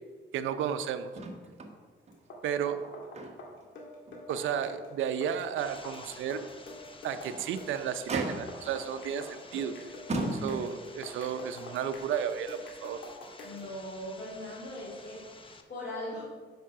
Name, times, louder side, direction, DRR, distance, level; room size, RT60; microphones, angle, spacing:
voice 1, 0.3-1.1 2.4-2.8 4.3-6.5 7.0-9.7 10.3-13.0, right 8 dB, 80° right, 9 dB, 0.6 m, -33 dB
Motor vehicle (road), 1.1-1.8 2.1-2.2 2.7-3.6 4.1-4.2 4.7-4.8 7.0-7.5 8.1-8.8 9.5-9.7 10.1-10.9 11.9-12.0, right 2 dB, 35° right, 1.2 m, -36 dB
Drum n Bass Hi-Hat Conga Loop, 2.1-13.7, left 1 dB, 75° left, 1.9 m, -46 dB
sound 1, 5.6-15.6, left 3 dB, 25° left, 0.8 m, -52 dB
voice 2, 13.4-15.2 15.7-16.2, left 1 dB, 55° left, -8 dB, 2.7 m, -39 dB
7.5 x 5.6 x 5.6 m, 1.5 s
cardioid pair, 90°, 20 cm